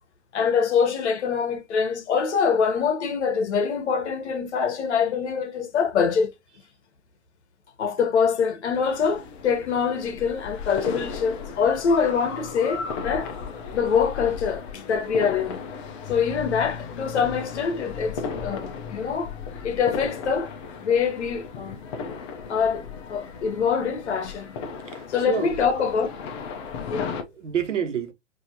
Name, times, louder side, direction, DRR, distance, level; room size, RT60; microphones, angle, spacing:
voice 1, 0.3-6.3 7.8-13.3 13.7-15.6 16.1-19.3 19.6-20.5 20.8-21.8 22.5-24.5 25.1-26.1 26.9-27.2, left 6 dB, 60° left, 1.0 m, -24 dB
sound 1, 8.7-27.2, left 5 dB, 25° left, 0.5 m, -36 dB
voice 2, 24.8-25.6 27.2-28.1, right 8 dB, 75° right, 1.2 m, -29 dB
4.5 x 2.8 x 2.8 m
hypercardioid pair, 130°, 38 cm